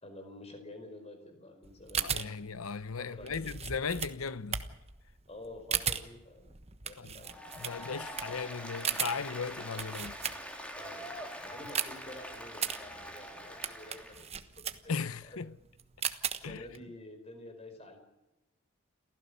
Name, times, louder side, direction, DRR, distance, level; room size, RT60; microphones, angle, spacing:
voice 1, 0.0-2.4 3.0-3.6 5.3-6.5 6.8-7.3 10.8-14.9 15.2-15.4 16.3-18.0, left 1 dB, 30° left, 5.0 m, -49 dB
sound 1, 1.6-10.8 11.2-16.8, right 8 dB, 30° right, 1.3 m, -37 dB
voice 2, 2.0-4.7 7.0-7.1 7.6-10.2 14.9-15.5 16.4-16.6, left 5 dB, 90° left, 0.9 m, -37 dB
Applause, 7.2-14.2, equal, 5° left, 3.4 m, -44 dB
29.0 x 15.5 x 6.9 m
head